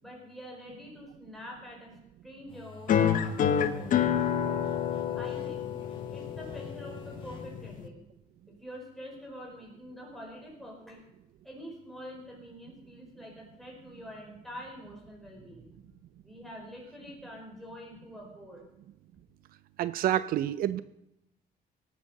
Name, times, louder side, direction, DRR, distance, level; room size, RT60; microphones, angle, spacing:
voice 1, 0.0-1.9 2.2-3.9 5.1-5.7 6.1-8.0 8.5-11.0 11.4-15.8 16.2-18.6, equal, ahead, -2 dB, 4.7 m, -46 dB
sound 1, 2.5-7.5, left 1 dB, 35° left, 2.7 m, -51 dB
sound 2, 2.9-7.9, left 8 dB, 60° left, 1.1 m, -28 dB
voice 2, 19.8-20.8, right 12 dB, 75° right, 15 dB, 0.5 m, -28 dB
17.5 x 8.1 x 6.4 m, 0.85 s
cardioid pair, 145°, 15 cm